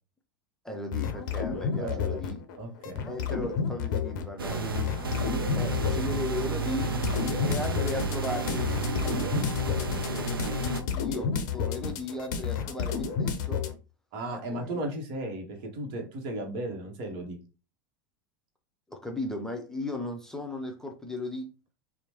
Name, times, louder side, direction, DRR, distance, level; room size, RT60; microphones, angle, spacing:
voice 1, 0.6-2.4 3.0-4.9 5.5-6.9 7.4-8.7 10.1-13.6 14.5-14.8 18.9-21.5, left 2 dB, 5° left, 0.6 m, -36 dB
sound 1, 0.9-2.6 2.8-13.7, left 6 dB, 60° left, 0.5 m, -31 dB
voice 2, 1.7-3.1 14.1-17.4, right 1 dB, 50° right, 0.9 m, -35 dB
sound 2, 4.4-10.8, right 2 dB, 90° right, 0.4 m, -31 dB
2.9 x 2.0 x 2.8 m
figure-of-eight pair, 85°, 11 cm